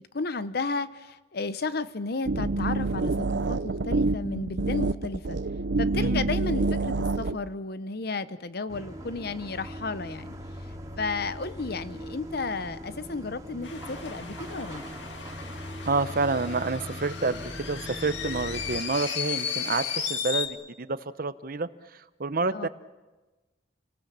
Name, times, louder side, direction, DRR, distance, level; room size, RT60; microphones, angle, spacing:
voice 1, 0.1-5.4 5.8-10.3 11.0-14.8 22.5-22.7, left 3 dB, 60° left, 14 dB, 0.9 m, -33 dB
sound 1, 2.3-7.4, right 3 dB, 80° right, 0.7 m, -27 dB
voice 2, 5.9-6.3 15.8-22.7, right 3 dB, 55° right, 13 dB, 0.9 m, -29 dB
sound 2, 8.7-18.8, equal, 20° right, 2.4 m, -40 dB
sound 3, 13.6-20.5, left 7 dB, 90° left, 2.1 m, -35 dB
29.0 x 19.0 x 7.4 m, 1.2 s
head